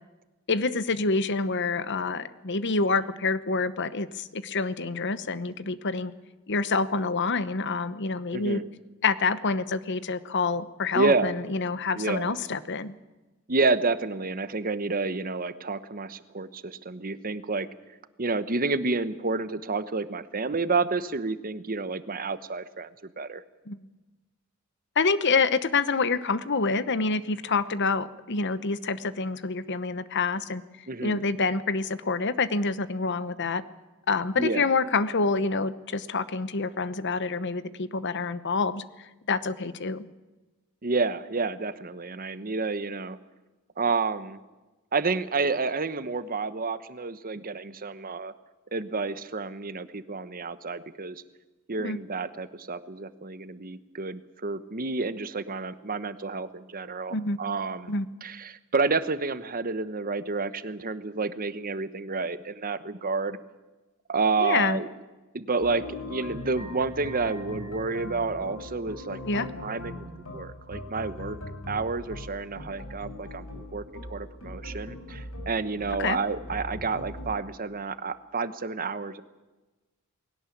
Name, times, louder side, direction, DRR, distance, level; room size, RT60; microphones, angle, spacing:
voice 1, 0.5-6.1 6.5-8.6 9.0-13.0 23.7-23.8 25.0-30.6 31.0-33.6 34.1-40.1 51.8-52.0 57.1-57.4 57.9-58.1 64.4-64.8 69.3-69.5 76.0-76.2, left 4 dB, 55° left, 15 dB, 1.0 m, -27 dB
voice 2, 8.3-8.6 10.9-11.3 11.9-12.3 13.5-17.7 18.2-23.4 30.9-31.2 34.3-34.7 40.8-43.2 43.8-44.4 44.9-48.3 48.7-51.2 51.7-57.9 58.2-63.4 64.1-64.9 65.3-71.4 71.7-79.2, right 3 dB, 40° right, 13 dB, 1.1 m, -30 dB
sound 1, 65.6-77.3, left 1 dB, 85° left, 5.3 m, -40 dB
20.5 x 17.5 x 8.6 m, 1.1 s
head